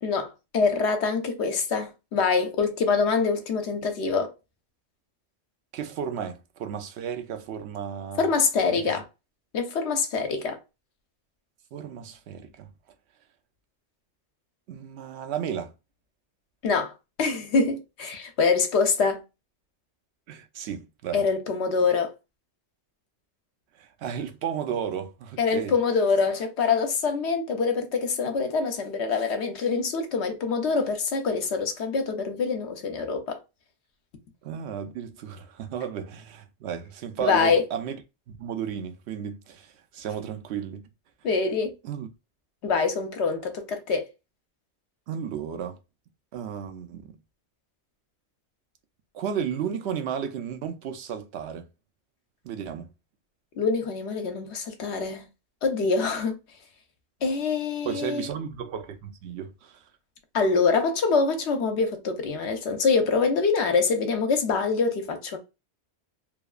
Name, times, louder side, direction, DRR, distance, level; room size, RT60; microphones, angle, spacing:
voice 1, 0.0-4.3 8.2-9.0 9.5-10.6 16.6-16.9 17.2-19.2 21.1-22.1 25.4-33.4 37.2-37.6 41.2-41.7 42.6-44.1 53.6-55.3 55.6-56.4 57.2-58.3 60.3-65.4, left 4 dB, 70° left, 0.9 m, -25 dB
voice 2, 5.7-8.3 8.7-9.0 11.7-12.7 14.7-15.7 20.3-21.3 23.8-25.7 34.4-38.0 38.3-40.8 41.8-42.1 45.1-45.8 46.3-47.1 49.1-51.7 52.4-52.9 57.8-59.8, right 8 dB, 70° right, 0.8 m, -33 dB
2.9 x 2.3 x 2.4 m
omnidirectional pair, 1.2 m